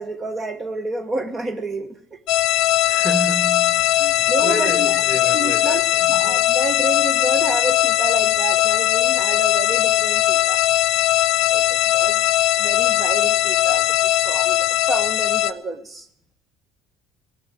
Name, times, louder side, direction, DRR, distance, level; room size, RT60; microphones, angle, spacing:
voice 1, 0.0-2.2 4.0-5.8 6.1-10.6 11.5-12.3 12.6-16.1, right 3 dB, 30° right, 1.2 m, -29 dB
sound 1, 2.3-15.5, left 14 dB, 60° left, 0.6 m, -19 dB
voice 2, 2.8-6.3, equal, ahead, 1.5 m, -31 dB
18.5 x 6.4 x 9.4 m
hypercardioid pair, 65°, 0 cm